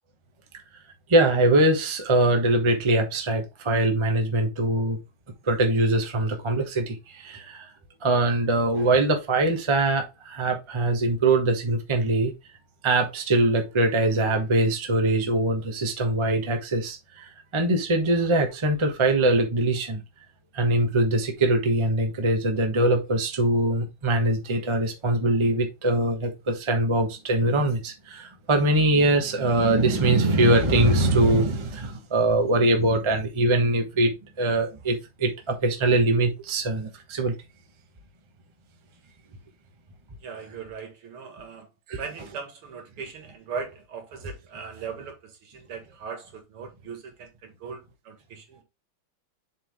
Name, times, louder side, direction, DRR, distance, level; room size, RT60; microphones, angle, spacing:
voice 1, 1.1-5.0 5.4-7.7 8.0-12.3 12.8-20.0 20.5-37.3 41.9-42.0, right 2 dB, 20° right, 0.9 m, -22 dB
voice 2, 40.2-41.7 41.9-48.6, right 5 dB, 75° right, 2.5 m, -39 dB
7.3 x 4.8 x 3.5 m
omnidirectional pair, 2.4 m